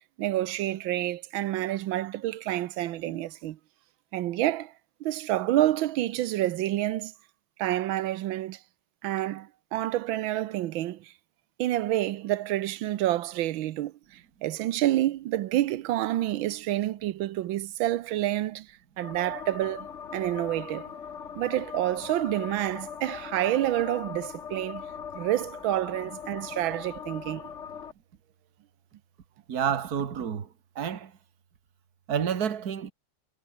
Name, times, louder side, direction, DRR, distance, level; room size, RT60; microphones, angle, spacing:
voice 1, 0.2-3.6 4.1-4.7 5.0-7.1 7.6-8.6 9.0-11.1 11.6-18.7 19.0-20.9 21.4-24.8 25.1-27.5, right 14 dB, 75° right, 1.5 m, -28 dB
sound 1, 19.0-27.9, left 7 dB, 40° left, 1.2 m, -40 dB
voice 2, 29.5-30.5 30.8-31.1 32.1-32.9, right 8 dB, 50° right, 2.0 m, -29 dB
omnidirectional pair, 2.3 m